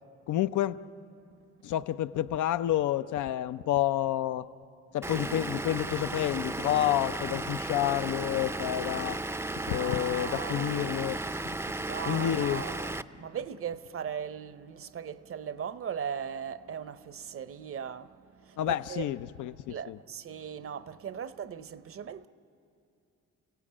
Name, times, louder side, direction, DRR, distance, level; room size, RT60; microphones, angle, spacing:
voice 1, 0.3-0.8 1.6-4.5 4.9-9.2 9.7-11.2 12.1-12.6 18.6-20.0, left 12 dB, 80° left, 0.6 m, -29 dB
Vehicle / Engine, 5.0-13.0, right 2 dB, 10° right, 0.5 m, -35 dB
Wind instrument woodwind instrument, 5.7-10.5, right 5 dB, 55° left, 1.3 m, -54 dB
voice 2, 9.6-11.0 11.8-19.0 19.7-22.3, right 8 dB, 45° right, 0.7 m, -39 dB
29.5 x 17.0 x 8.7 m
cardioid pair, 90°, 30 cm